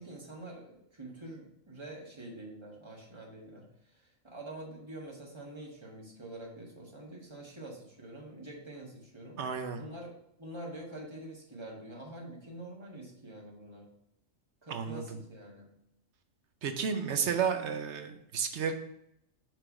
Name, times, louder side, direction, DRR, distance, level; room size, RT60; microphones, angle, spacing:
voice 1, 0.0-9.4 9.8-10.1 10.4-13.9 14.6-15.7, right 1 dB, 20° right, -2 dB, 1.4 m, -46 dB
voice 2, 9.4-9.8 14.7-15.0 16.6-18.7, right 6 dB, 65° right, 6 dB, 0.9 m, -32 dB
6.1 x 3.3 x 5.9 m, 0.77 s
omnidirectional pair, 1.4 m